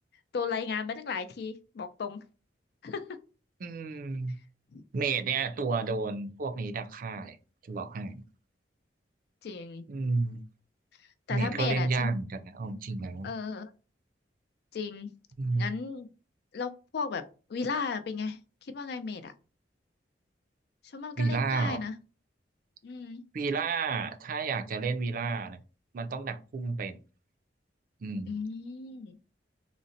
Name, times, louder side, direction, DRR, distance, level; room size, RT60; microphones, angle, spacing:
voice 1, 0.3-2.2 2.8-3.2 4.7-4.8 9.4-9.9 11.3-12.1 13.2-13.7 14.7-15.1 15.6-16.1 16.5-17.2 17.5-19.3 20.9-21.9 22.8-23.2 28.3-29.2, left 5 dB, 65° left, 0.4 m, -35 dB
voice 2, 3.6-4.4 4.9-7.4 7.7-8.2 9.9-10.4 11.3-13.3 15.4-15.7 21.2-21.8 23.3-25.6 25.9-27.0 28.0-28.4, right 4 dB, 50° right, 0.4 m, -31 dB
3.8 x 2.1 x 2.6 m
head